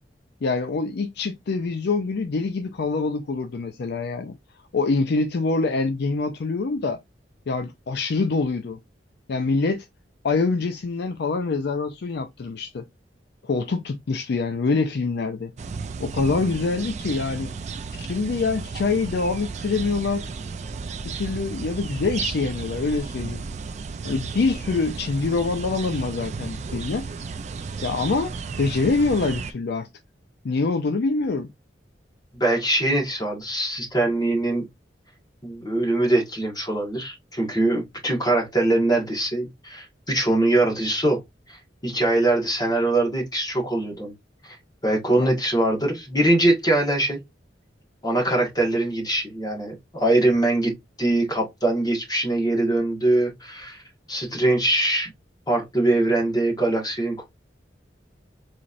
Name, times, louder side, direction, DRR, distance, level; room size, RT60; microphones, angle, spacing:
voice 1, 0.4-4.3 4.7-7.0 7.5-8.8 9.3-9.9 10.2-12.8 13.4-15.5 16.0-17.5 18.0-20.2 21.1-23.4 24.0-27.0 27.8-28.3 28.6-29.9 30.4-31.5 45.2-45.3, left 3 dB, 65° left, 0.4 m, -25 dB
sound 1, 15.6-29.5, right 4 dB, 40° right, 0.4 m, -33 dB
voice 2, 32.3-34.6 35.4-41.2 41.5-44.1 44.4-44.6 44.8-47.2 48.0-50.7 51.0-53.8 54.1-55.1 55.5-57.2, right 2 dB, 20° left, 1.3 m, -22 dB
4.0 x 3.0 x 2.5 m
head